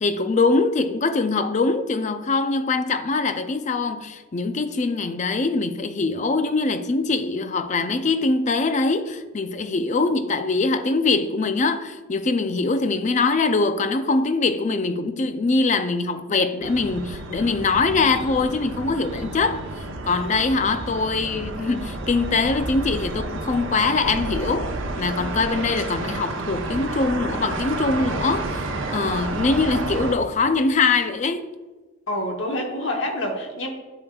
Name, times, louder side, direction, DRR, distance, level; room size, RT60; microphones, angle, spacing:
voice 1, 0.0-19.6 20.1-31.5, left 3 dB, 35° left, 0.4 m, -23 dB
sound 1, 16.6-30.2, right 2 dB, 65° right, 0.8 m, -30 dB
voice 2, 32.1-33.7, left 1 dB, 60° left, 1.1 m, -27 dB
10.5 x 6.3 x 2.3 m
head